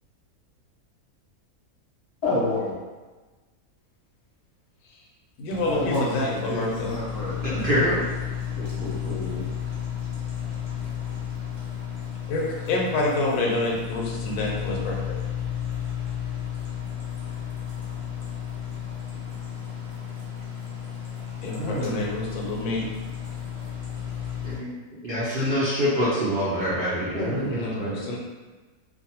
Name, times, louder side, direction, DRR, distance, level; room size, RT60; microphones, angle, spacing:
voice 1, 2.2-2.7 5.6-7.7 8.6-9.5 21.6-22.1 26.6-26.7 27.0-27.6, left 2 dB, 35° left, -9 dB, 0.7 m, -30 dB
voice 2, 5.4-6.9 12.3-15.2 21.4-22.9 27.4-28.2, left 2 dB, 75° left, -2 dB, 1.1 m, -28 dB
sound 1, 5.5-24.6, left 9 dB, 10° right, 0.7 m, -33 dB
voice 3, 7.4-8.0 24.4-24.8 25.0-28.0, equal, 70° right, -9 dB, 0.5 m, -25 dB
2.5 x 2.2 x 2.8 m, 1.3 s
omnidirectional pair, 1.6 m